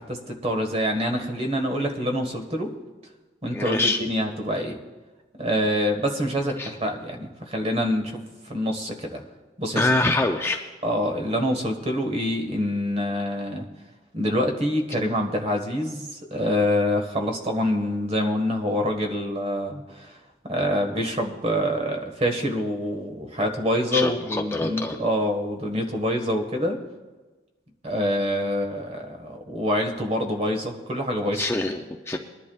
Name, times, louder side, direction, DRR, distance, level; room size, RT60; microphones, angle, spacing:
voice 1, 0.0-2.7 3.4-4.8 5.4-8.2 8.4-9.2 9.6-9.9 10.8-13.7 14.1-20.2 20.5-26.8 27.8-31.5, equal, 35° right, 4 dB, 1.5 m, -26 dB
voice 2, 3.5-4.0 6.6-6.7 9.8-10.6 23.9-25.0 31.3-32.2, left 2 dB, 15° left, 3 dB, 0.5 m, -24 dB
22.0 x 11.0 x 2.4 m, 1.2 s
head